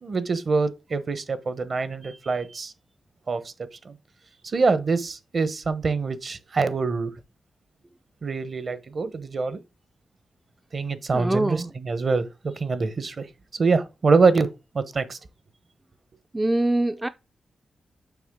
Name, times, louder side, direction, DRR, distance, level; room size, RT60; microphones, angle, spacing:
voice 1, 0.0-2.7 3.3-3.5 3.8-3.9 4.4-7.1 8.2-9.6 10.7-13.3 13.6-14.5 14.7-15.2, right 4 dB, 50° right, 0.9 m, -24 dB
voice 2, 11.1-11.7 16.3-17.1, right 1 dB, 15° right, 0.3 m, -23 dB
7.1 x 5.1 x 3.6 m
wide cardioid pair, 105°, 0 cm